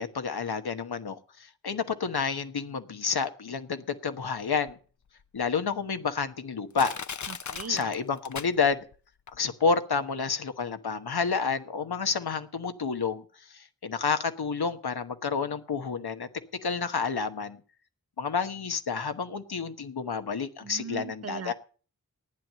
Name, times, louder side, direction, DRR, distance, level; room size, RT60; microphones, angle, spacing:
voice 1, 0.0-4.8 5.3-6.9 7.7-8.8 9.3-16.3 16.6-17.6 18.2-21.5, left 5 dB, 85° left, 1.2 m, -30 dB
Crushing, 4.7-4.8 5.4-5.5 6.2-6.3 6.8-9.0 9.3-9.4, left 6 dB, 50° left, 0.7 m, -38 dB
voice 2, 7.3-7.9 20.6-21.5, right 6 dB, 40° right, 0.5 m, -39 dB
11.0 x 9.2 x 7.5 m
cardioid pair, 45°, 37 cm